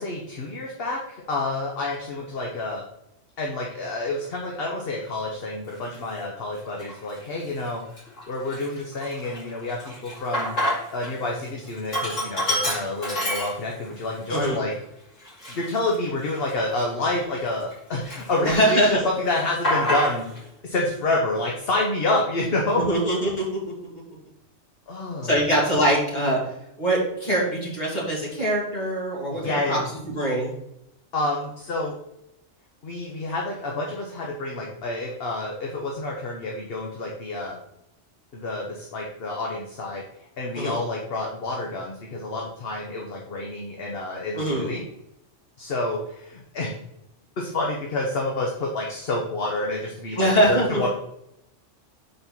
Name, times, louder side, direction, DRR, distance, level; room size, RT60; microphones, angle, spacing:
voice 1, 0.0-2.8 3.4-10.5 10.9-14.7 15.5-20.3 20.6-22.8 24.9-25.4 29.3-29.9 31.1-31.9 32.8-37.6 38.3-40.0 40.4-44.8 45.6-46.8 47.4-50.9, left 2 dB, 55° left, -1 dB, 1.2 m, -28 dB
Sink (filling or washing), 5.8-6.0 6.6-7.2 7.6-7.7 8.0-11.1 11.4-14.0 14.4-14.5 15.2-17.7 18.0-18.8 19.1-20.4, equal, 80° left, 3.4 m, -28 dB
voice 2, 14.3-14.6 18.4-19.0 22.8-23.4 25.2-26.4 26.8-29.8 30.1-30.5 40.5-40.8 44.4-44.7 50.2-50.8, right 1 dB, 35° left, -4 dB, 2.7 m, -23 dB
5.6 x 4.3 x 6.0 m, 0.80 s
omnidirectional pair, 1.3 m